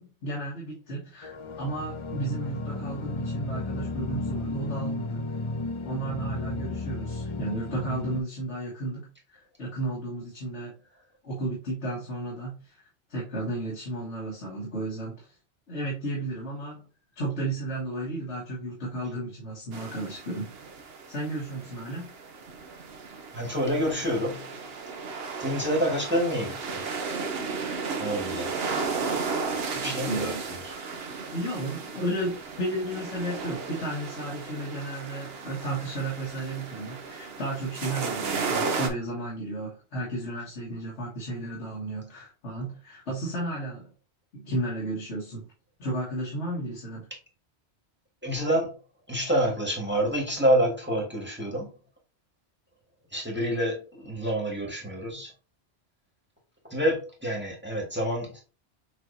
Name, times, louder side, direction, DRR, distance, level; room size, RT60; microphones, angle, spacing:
voice 1, 0.0-5.3 5.8-10.7 11.2-15.4 15.7-16.9 17.2-20.5 21.1-22.1 29.7-30.4 31.3-43.9 44.3-45.5 45.8-47.1, right 2 dB, 75° left, 1.7 m, -33 dB
sound 1, 1.2-8.2, left 3 dB, 50° left, 0.3 m, -33 dB
sound 2, 19.7-38.9, right 4 dB, 60° right, 1.0 m, -34 dB
voice 2, 23.3-24.5 25.4-26.8 28.0-28.6 29.8-30.7 48.2-48.7 49.1-51.7 53.1-55.3 56.7-58.4, equal, 10° right, 1.6 m, -27 dB
6.7 x 3.0 x 2.6 m
omnidirectional pair, 1.2 m